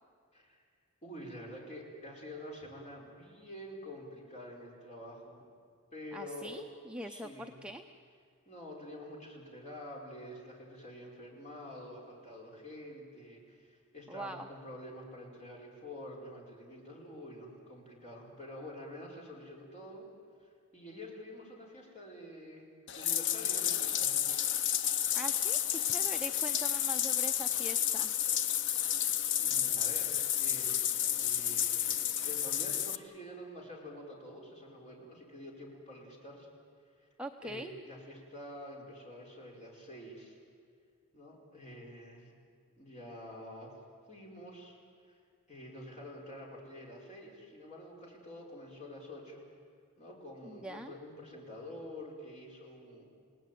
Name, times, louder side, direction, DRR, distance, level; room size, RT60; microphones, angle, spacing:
voice 1, 1.0-5.4 5.9-6.6 7.1-7.6 8.4-20.1 20.4-24.2 29.4-30.1 30.4-36.5 37.0-37.1 37.4-40.4 41.1-42.3 42.7-43.7 44.1-44.8 45.1-45.2 45.5-49.5 50.0-53.2, left 1 dB, 30° left, -1 dB, 5.1 m, -48 dB
voice 2, 6.1-7.3 7.6-7.8 14.1-14.5 25.1-28.1 37.2-37.7 50.4-50.9, right 1 dB, 5° right, 3 dB, 0.7 m, -43 dB
Bathtub (filling or washing), 22.9-33.0, left 10 dB, 55° left, 0.7 m, -31 dB
29.0 x 18.0 x 9.2 m, 2.2 s
head